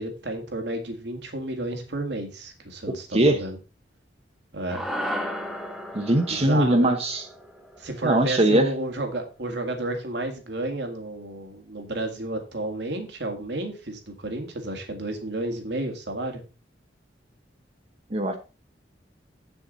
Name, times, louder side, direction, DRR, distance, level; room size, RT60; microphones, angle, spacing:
voice 1, 0.0-3.6 4.5-4.8 6.3-7.0 7.8-16.4, right 2 dB, 70° right, 4 dB, 2.0 m, -31 dB
sound 1, 4.7-9.2, equal, ahead, 1.2 m, -35 dB
voice 2, 5.9-7.2 8.0-8.7 18.1-18.3, right 1 dB, 35° right, 5 dB, 1.0 m, -20 dB
7.9 x 7.0 x 4.0 m, 0.32 s
head